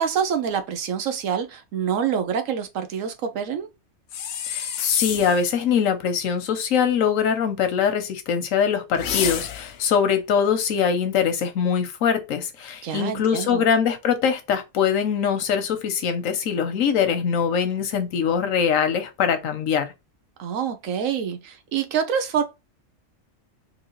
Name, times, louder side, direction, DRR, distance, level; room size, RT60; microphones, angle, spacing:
voice 1, 0.0-3.7 12.8-13.7 20.4-22.4, right 7 dB, 80° right, 1.1 m, -26 dB
sound 1, 4.1-5.4 8.9-9.8, left 9 dB, 65° left, 0.7 m, -28 dB
voice 2, 4.5-19.9, left 7 dB, 85° left, 1.1 m, -23 dB
3.8 x 2.9 x 3.0 m
omnidirectional pair, 1.3 m